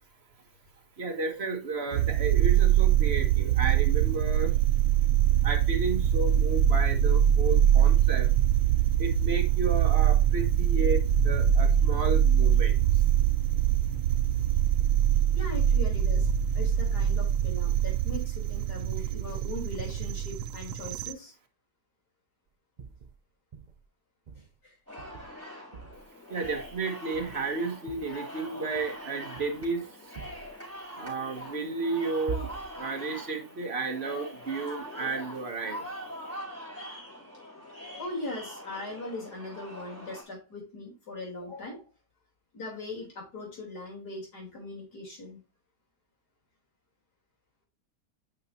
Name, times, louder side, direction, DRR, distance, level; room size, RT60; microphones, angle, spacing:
voice 1, 1.0-4.5 5.4-8.3 9.0-13.0 26.3-30.1 30.9-36.0, right 3 dB, 40° right, 3 dB, 1.7 m, -33 dB
sound 1, 1.9-21.1, right 10 dB, 80° right, 1.2 m, -23 dB
voice 2, 15.3-21.3 24.6-24.8 38.0-41.8 42.5-45.4, left 2 dB, 80° left, -1 dB, 4.1 m, -40 dB
sound 2, 22.8-23.2 23.5-23.8 24.3-24.5 25.0-25.4 25.7-26.1 26.4-26.8 27.1-27.5 27.9-28.1 28.6-29.0 29.4-29.8 30.1-30.5 32.3-32.8, right 5 dB, 60° right, 0.4 m, -42 dB
sound 3, 24.9-40.2, equal, 10° left, 3.4 m, -43 dB
8.8 x 5.6 x 2.7 m, 0.30 s
omnidirectional pair, 1.7 m